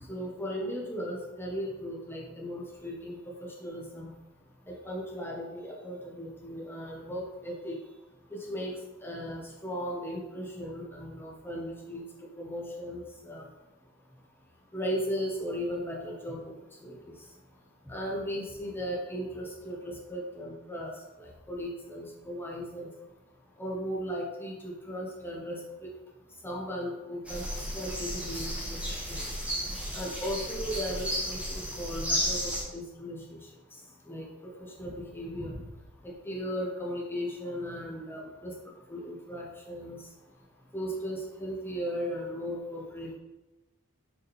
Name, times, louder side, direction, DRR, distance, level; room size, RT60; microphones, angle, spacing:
voice 1, 0.1-4.1 4.7-7.8 8.3-8.7 9.0-12.0 12.4-13.4 14.7-16.4 16.8-16.9 17.9-20.9 21.2-22.9 23.6-25.9 26.4-27.5 27.7-28.5 29.1-29.2 29.9-33.4 34.1-34.3 34.6-35.6 36.0-38.5 38.9-40.0 40.7-43.2, equal, 10° left, -4 dB, 1.1 m, -36 dB
sound 1, 27.3-32.6, equal, 5° right, 1.4 m, -33 dB
6.8 x 3.7 x 4.2 m, 1.1 s
head